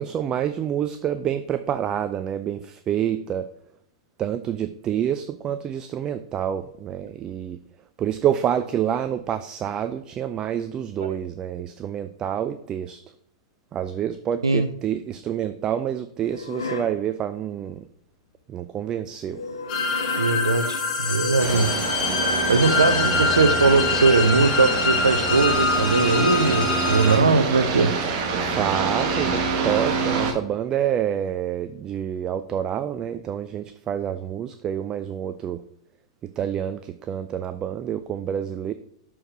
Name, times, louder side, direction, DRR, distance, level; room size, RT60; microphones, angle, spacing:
voice 1, 0.0-3.5 4.2-7.6 8.0-13.0 13.7-17.8 18.5-19.4 23.1-23.2 28.4-35.6 36.2-38.7, right 10 dB, 30° right, 11 dB, 0.4 m, -27 dB
sound 1, 16.2-17.0 19.2-21.8 23.1-24.5, left 3 dB, 85° left, 0.9 m, -34 dB
sound 2, 19.7-27.2, left 4 dB, 35° left, 1.9 m, -25 dB
voice 2, 20.2-21.8 22.5-27.9, right 3 dB, 85° right, 9 dB, 0.5 m, -20 dB
sound 3, 21.4-30.3, right 4 dB, 45° right, 1.3 m, -26 dB
6.4 x 4.4 x 5.0 m, 0.68 s
hypercardioid pair, 100°, 3 cm